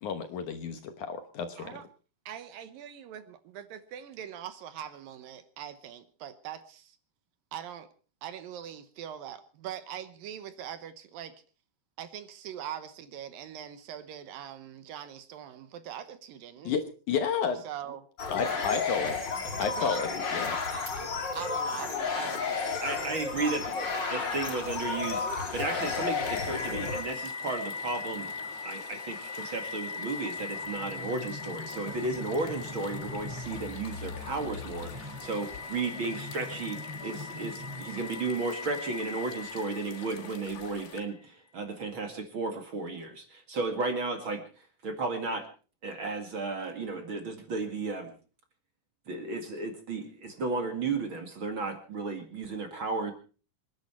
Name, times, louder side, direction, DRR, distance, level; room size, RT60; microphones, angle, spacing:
voice 1, 0.0-1.8 16.6-17.6 18.3-19.2 19.6-20.6, left 6 dB, 65° left, 8 dB, 2.3 m, -31 dB
voice 2, 2.3-7.0 7.5-7.9 8.2-11.4 12.0-16.7 17.6-18.1 19.6-20.0 21.0-21.1 21.3-23.5, right 10 dB, 75° right, 11 dB, 2.6 m, -42 dB
sound 1, 18.2-27.0, left 4 dB, 35° left, 2.4 m, -32 dB
voice 3, 22.8-23.6 24.1-28.3 28.6-44.4 44.8-45.5 45.8-48.1 49.1-53.1, right 3 dB, 40° right, 5 dB, 2.2 m, -34 dB
sound 2, 24.3-41.0, left 8 dB, 85° left, 4.0 m, -47 dB
sound 3, 25.8-41.0, left 3 dB, 5° right, 5.1 m, -40 dB
26.0 x 11.0 x 4.4 m, 0.37 s
omnidirectional pair, 4.4 m